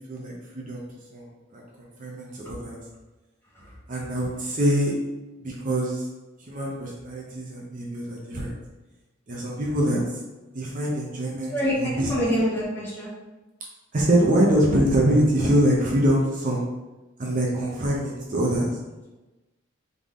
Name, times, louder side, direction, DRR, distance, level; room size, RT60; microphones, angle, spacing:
voice 1, 0.1-0.8 1.1-1.3 1.5-2.8 3.9-4.9 5.4-6.1 6.4-8.5 9.3-10.2 10.5-12.3 13.9-16.6 17.2-18.8, right 1 dB, 40° right, -3 dB, 0.7 m, -24 dB
voice 2, 12.1-13.1, equal, 10° left, -7 dB, 1.3 m, -25 dB
3.9 x 3.6 x 3.6 m, 1.1 s
head